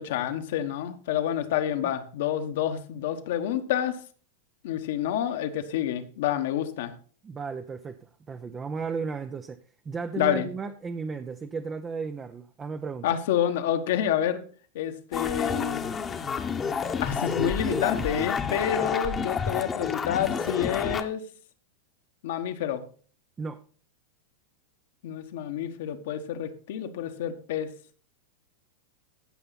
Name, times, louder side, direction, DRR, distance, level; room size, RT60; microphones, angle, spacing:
voice 1, 0.0-4.0 4.6-6.9 10.2-10.5 13.0-14.4 14.7-15.9 17.0-21.2 22.2-22.8 25.0-27.7, left 10 dB, 65° left, 1.3 m, -28 dB
voice 2, 7.2-9.6 9.9-13.1 23.4-23.6, right 5 dB, 20° right, 0.6 m, -34 dB
sound 1, 15.1-21.0, left 6 dB, 25° left, 1.1 m, -29 dB
15.5 x 5.6 x 4.1 m
hypercardioid pair, 110°, 0 cm